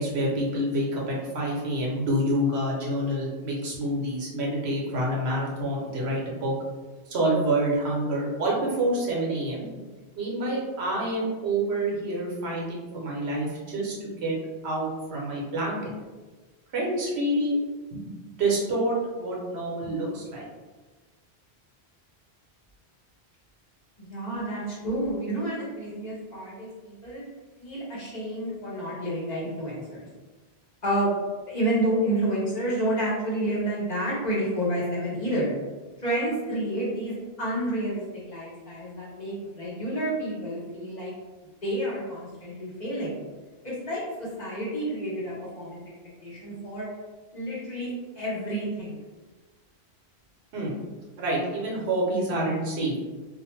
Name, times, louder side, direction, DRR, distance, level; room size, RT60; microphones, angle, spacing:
voice 1, 0.0-6.5 7.1-9.7 10.2-14.4 14.6-15.8 16.7-17.6 17.9-18.0 18.4-20.5 50.5-50.7 51.2-52.9, right 1 dB, 85° right, -3 dB, 1.0 m, -27 dB
voice 2, 24.0-27.2 27.6-30.1 30.8-35.5 36.0-38.0 38.3-41.1 41.6-43.2 43.6-45.8 46.2-46.9 47.3-49.0, right 1 dB, 45° left, -7 dB, 1.0 m, -29 dB
2.6 x 2.1 x 3.0 m, 1.3 s
omnidirectional pair, 1.1 m